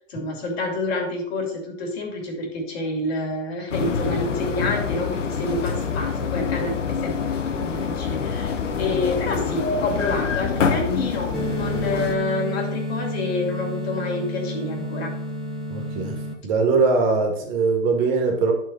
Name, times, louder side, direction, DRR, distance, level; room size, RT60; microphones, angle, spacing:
voice 1, 0.0-15.1, left 2 dB, 55° left, 1 dB, 2.8 m, -28 dB
sound 1, 3.7-12.1, left 6 dB, 75° left, 1.0 m, -26 dB
sound 2, 11.3-16.3, equal, ahead, 0.7 m, -30 dB
voice 2, 15.7-16.2 16.4-18.5, right 4 dB, 40° right, 2 dB, 2.3 m, -21 dB
11.0 x 4.5 x 4.2 m, 0.77 s
hypercardioid pair, 125°, 38 cm